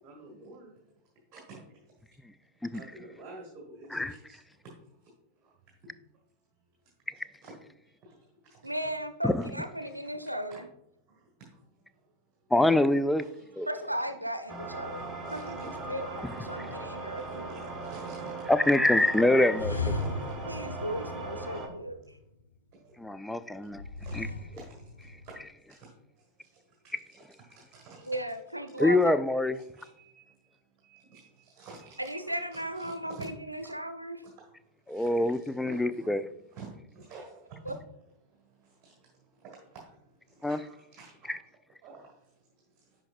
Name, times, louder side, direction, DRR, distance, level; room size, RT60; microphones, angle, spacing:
voice 1, 0.0-0.7 1.3-1.6 2.7-4.4 7.1-7.5 8.0-8.2 8.4-8.5 9.9-10.0 10.2-10.6 11.1-11.2 13.1-13.9 15.2-15.8 17.1-18.3 18.9-19.1 20.0-20.1 22.7-22.9 23.8-24.2 24.5-24.7 25.2-25.4 25.7-25.9 26.8-27.2 27.5-28.2 29.5-30.3 30.8-33.3 33.6-33.7 34.2-34.3 34.9-36.1 36.5-37.8 38.6-38.9 39.4-39.8 40.3-41.5 41.8-42.1, right 3 dB, 30° right, 1.5 m, -50 dB
voice 2, 8.6-10.7 13.7-17.7 20.5-22.0 28.1-29.2 32.0-34.2 37.7-37.8, right 1 dB, 85° right, 0.6 m, -36 dB
voice 3, 12.5-13.2 13.6-13.7 16.2-16.3 18.5-19.9 23.0-23.8 24.1-24.3 28.8-29.6 34.9-36.2 40.4-40.6, left 1 dB, 5° left, 0.3 m, -25 dB
sound 1, 14.5-21.7, right 3 dB, 15° right, 1.2 m, -39 dB
sound 2, 19.5-22.2 23.7-25.4, left 3 dB, 80° left, 0.5 m, -36 dB
9.6 x 5.2 x 2.5 m
figure-of-eight pair, 90°, 0 cm